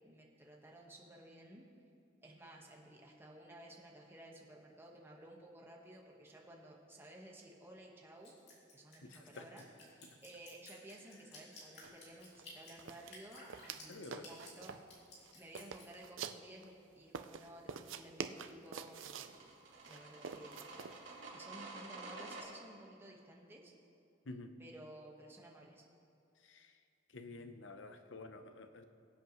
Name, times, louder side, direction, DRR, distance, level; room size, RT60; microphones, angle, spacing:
voice 1, 0.0-1.6 2.2-8.4 8.7-14.8 15.3-19.5 19.9-20.6 21.3-23.7 24.6-25.8, right 1 dB, 10° right, -1 dB, 1.3 m, -55 dB
Drip, 8.2-15.9, left 2 dB, 60° left, 3.1 m, -55 dB
voice 2, 9.0-9.5 10.0-10.2 13.9-14.3 24.2-24.5 26.4-26.8 27.1-28.9, left 2 dB, 80° left, 7 dB, 0.8 m, -50 dB
sound 1, 11.8-11.9 12.2-12.5 12.8-13.8 14.1-14.9 15.2-16.7 17.1-19.4 19.9-21.0, right 6 dB, 90° right, 0.5 m, -46 dB
sound 2, 19.0-22.4, right 3 dB, 70° right, 2.8 m, -50 dB
22.5 x 8.1 x 3.1 m, 2.5 s
head